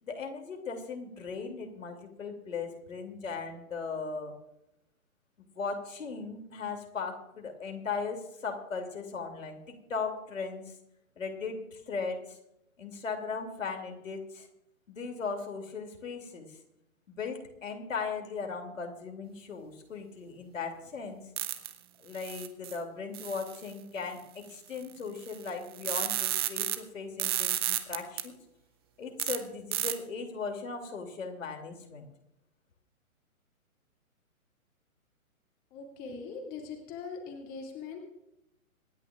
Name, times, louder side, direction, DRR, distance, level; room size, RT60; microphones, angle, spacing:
voice 1, 0.0-4.3 5.6-10.7 11.2-12.4 12.8-14.5 14.9-16.5 17.1-21.2 22.0-28.4 29.0-32.1, left 5 dB, 60° left, 4 dB, 2.8 m, -38 dB
sound 1, 21.4-21.7 22.1-22.8 23.1-23.7 24.8-24.9 25.2-26.8 27.2-28.2 29.2-29.4 29.7-29.9, right 13 dB, 20° right, 0.6 m, -32 dB
voice 2, 35.7-38.0, left 5 dB, 20° left, 2 dB, 2.2 m, -41 dB
26.0 x 10.5 x 2.4 m, 0.85 s
figure-of-eight pair, 130°, 43 cm